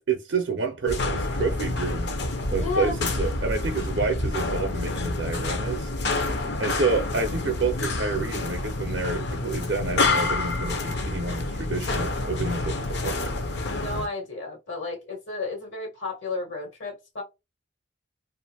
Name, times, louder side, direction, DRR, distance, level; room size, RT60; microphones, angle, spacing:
voice 1, 0.0-2.1 2.5-5.9 6.6-13.3, right 4 dB, 65° right, 0.5 m, -29 dB
sound 1, 0.9-14.1, left 2 dB, 60° left, 0.5 m, -28 dB
voice 2, 2.5-3.0 6.3-6.7 13.7-17.2, left 3 dB, 75° left, 1.3 m, -33 dB
2.5 x 2.4 x 2.7 m
head